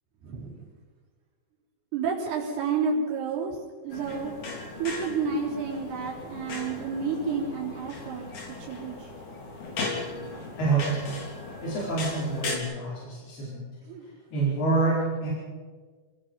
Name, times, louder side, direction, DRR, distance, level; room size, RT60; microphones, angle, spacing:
voice 1, 0.2-0.6 1.9-3.6 3.8-4.3 4.8-8.3 8.6-9.1 13.9-14.0, right 5 dB, 80° right, -5 dB, 6.0 m, -30 dB
sound 1, 3.9-12.6, left 3 dB, 50° left, 4.8 m, -37 dB
voice 2, 10.6-11.1 11.6-13.6 14.3-15.3, right 3 dB, 75° left, -7 dB, 6.9 m, -27 dB
28.5 x 20.0 x 5.6 m, 1.5 s
omnidirectional pair, 4.6 m